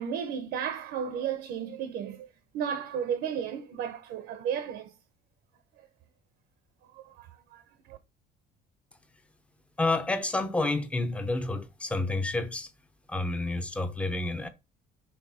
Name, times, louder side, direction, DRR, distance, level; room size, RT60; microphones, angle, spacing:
voice 1, 0.0-2.3 2.5-4.9 6.9-7.6 7.9-8.0, right 8 dB, 70° right, 0.9 m, -33 dB
voice 2, 9.8-12.7 13.1-14.5, left 2 dB, 5° left, 0.7 m, -29 dB
5.8 x 4.0 x 4.2 m
cardioid pair, 180°, 19 cm